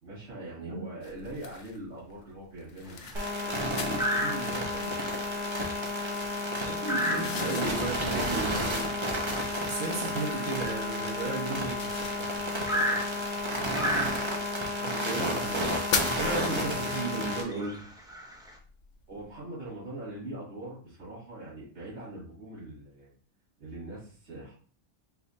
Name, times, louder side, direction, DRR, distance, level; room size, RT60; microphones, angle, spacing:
voice 1, 0.0-3.1 3.4-5.1 7.3-8.7 12.2-12.3 12.9-14.2 16.3-16.9 19.1-23.1 23.6-24.5, right 2 dB, 85° right, -9 dB, 2.7 m, -42 dB
sound 1, 1.0-19.4, left 6 dB, 75° left, 1.0 m, -41 dB
sound 2, 2.8-3.2 4.0-4.8 5.2-5.4 5.7-11.9 12.7-14.6 15.5-15.7 16.1-16.2 16.7-16.9 17.4-18.5, equal, 5° right, 0.3 m, -34 dB
sound 3, 3.1-17.4, left 1 dB, 30° right, 0.7 m, -31 dB
voice 2, 6.7-8.9 9.6-11.8 14.8-15.7 16.2-17.8, right 3 dB, 60° right, -1 dB, 1.3 m, -34 dB
4.8 x 3.2 x 2.7 m, 0.43 s
omnidirectional pair, 1.3 m